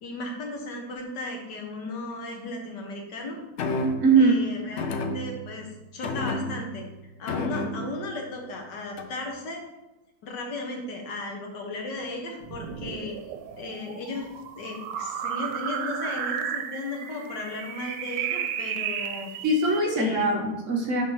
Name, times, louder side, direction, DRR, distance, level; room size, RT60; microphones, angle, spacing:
voice 1, 0.0-3.4 4.1-6.8 7.2-9.6 10.2-13.2 13.6-14.3 14.6-19.3 19.9-20.3, left 2 dB, 75° left, 2 dB, 1.8 m, -35 dB
sound 1, 3.6-4.2 4.8-5.6 6.0-6.8 7.3-8.1 9.0-9.3, left 2 dB, 60° left, 0.7 m, -30 dB
voice 2, 4.0-4.3 19.4-21.0, right 3 dB, 50° right, 1 dB, 1.2 m, -21 dB
spaceship taking off(deep space), 12.4-19.8, right 8 dB, 90° right, 1.2 m, -33 dB
6.3 x 4.1 x 5.6 m, 1.0 s
omnidirectional pair, 1.9 m